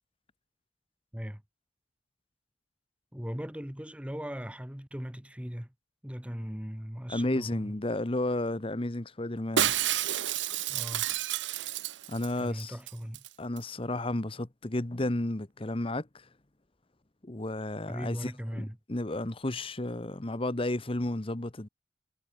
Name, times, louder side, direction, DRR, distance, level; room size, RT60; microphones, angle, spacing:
voice 1, 3.1-5.7 6.0-7.7 10.7-11.1 12.4-13.2 17.9-18.8, equal, 5° right, 1.2 m, -38 dB
voice 2, 7.1-9.7 12.1-12.7 13.4-16.2 17.2-21.7, left 1 dB, 30° left, 1.1 m, -32 dB
Shatter, 9.6-12.3 12.6-12.7 12.9-13.3 13.6-13.7, right 11 dB, 75° right, 0.8 m, -30 dB
head